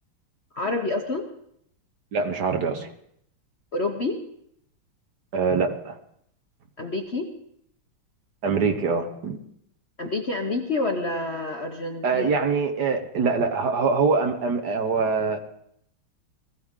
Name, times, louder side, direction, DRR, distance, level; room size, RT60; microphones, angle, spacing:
voice 1, 0.5-1.3 3.7-4.2 6.8-7.3 10.0-12.3, left 2 dB, 45° left, 2 dB, 0.8 m, -28 dB
voice 2, 2.1-2.9 5.3-6.0 8.4-9.4 12.0-15.4, right 4 dB, 60° right, 5 dB, 1.3 m, -24 dB
19.5 x 15.0 x 3.7 m, 0.72 s
omnidirectional pair, 2.3 m